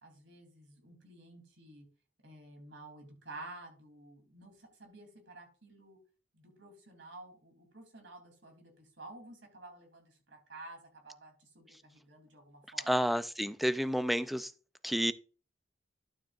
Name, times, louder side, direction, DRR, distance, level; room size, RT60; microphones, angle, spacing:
voice 1, 0.0-1.8 2.2-6.0 6.3-12.9, right 2 dB, 85° right, 3.3 m, -52 dB
voice 2, 12.9-14.5 14.8-15.1, equal, ahead, 0.4 m, -30 dB
12.0 x 7.4 x 2.5 m
head